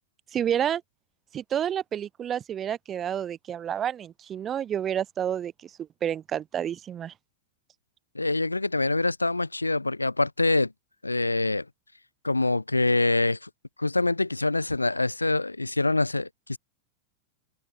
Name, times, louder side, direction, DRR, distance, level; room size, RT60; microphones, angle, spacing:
voice 1, 0.3-0.8 1.3-7.1, right 9 dB, 25° right, 1.4 m, -29 dB
voice 2, 8.1-10.7 11.0-11.6 12.2-13.5 13.8-16.6, left 2 dB, 85° left, 1.1 m, -25 dB
open air
figure-of-eight pair, 90°, 0 cm